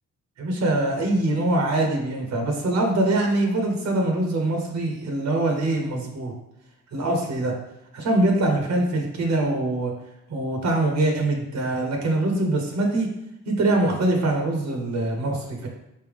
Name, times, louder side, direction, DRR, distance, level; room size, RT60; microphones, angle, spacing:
voice 1, 0.4-6.3 6.9-7.5 7.9-9.9 10.3-13.1 13.5-15.7, right 2 dB, 65° right, 2 dB, 1.0 m, -23 dB
4.3 x 3.4 x 3.5 m, 0.87 s
cardioid pair, 90°, 30 cm